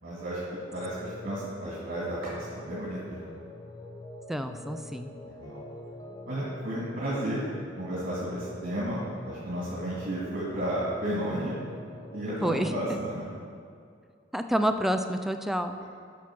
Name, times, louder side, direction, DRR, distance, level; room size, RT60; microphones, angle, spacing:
voice 1, 0.0-3.3 5.4-5.6 6.2-7.4 7.8-11.6 12.1-13.3, right 1 dB, 50° right, -8 dB, 2.2 m, -33 dB
sound 1, 0.5-13.0, left 1 dB, 20° left, 0.7 m, -45 dB
voice 2, 4.3-5.1 12.4-13.0 14.3-15.8, equal, ahead, 7 dB, 0.4 m, -28 dB
9.3 x 5.9 x 6.1 m, 2.3 s
head